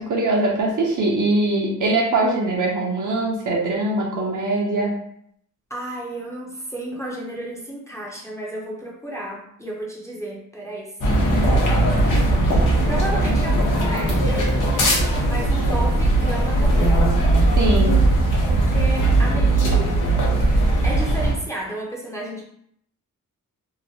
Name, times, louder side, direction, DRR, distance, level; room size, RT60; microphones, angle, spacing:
voice 1, 0.0-5.0 17.6-18.0, right 2 dB, 70° right, -3 dB, 0.6 m, -22 dB
voice 2, 5.7-10.9 12.0-12.4 12.9-14.5 15.2-17.0 18.5-19.9 20.8-22.4, right 1 dB, 10° left, -4 dB, 0.4 m, -32 dB
sound 1, 11.0-21.3, right 2 dB, 75° left, 0.8 m, -19 dB
2.9 x 2.1 x 2.7 m, 0.70 s
wide cardioid pair, 150°, 32 cm